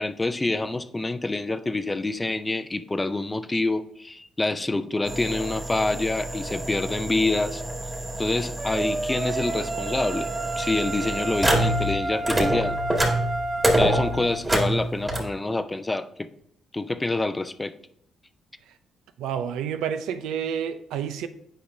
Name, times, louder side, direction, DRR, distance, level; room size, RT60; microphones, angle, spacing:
voice 1, 0.0-7.6 8.2-10.3 10.6-12.8 13.7-16.3 16.7-17.7, left 2 dB, 15° left, 0.4 m, -27 dB
sound 1, 5.1-11.9 12.2-15.2, right 1 dB, 20° right, 1.9 m, -27 dB
sound 2, 8.6-14.4, right 2 dB, 45° right, 0.9 m, -30 dB
voice 2, 19.2-21.3, right 8 dB, 90° right, 0.5 m, -29 dB
8.6 x 5.1 x 2.7 m
cardioid pair, 90°, 0 cm